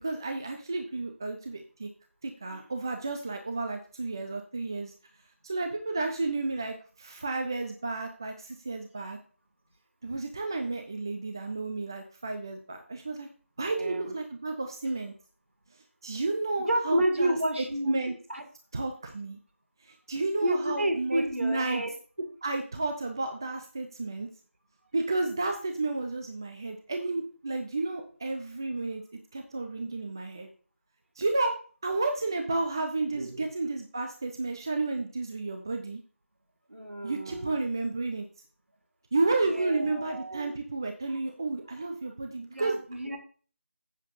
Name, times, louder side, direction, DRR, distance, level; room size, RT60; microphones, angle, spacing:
voice 1, 0.0-1.9 2.2-4.9 5.4-9.2 10.0-13.3 13.6-15.1 15.7-18.1 18.7-19.4 19.8-21.8 22.4-24.3 24.9-29.0 29.3-30.5 31.2-31.5 31.8-36.0 37.0-38.3 39.1-42.8, right 3 dB, 15° right, 4 dB, 0.5 m, -32 dB
voice 2, 13.7-14.2 16.7-18.4 20.4-21.9 33.1-33.4 36.7-37.6 39.4-40.5 42.5-43.2, right 1 dB, 60° right, 4 dB, 2.1 m, -30 dB
15.0 x 7.3 x 2.6 m, 0.40 s
figure-of-eight pair, 165°, 7 cm